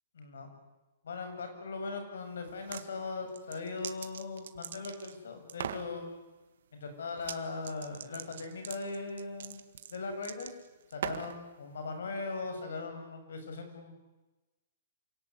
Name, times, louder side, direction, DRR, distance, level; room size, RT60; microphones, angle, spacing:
voice 1, 0.1-0.5 1.0-6.0 6.7-9.6 9.9-10.5 10.9-13.9, left 3 dB, 90° left, 6 dB, 7.2 m, -39 dB
sound 1, 2.5-2.9 3.3-5.2 5.5-5.9 7.2-7.4 7.6-11.4, right 9 dB, 60° right, 1.7 m, -41 dB
28.0 x 18.0 x 9.9 m, 1.1 s
hypercardioid pair, 175°, 0 cm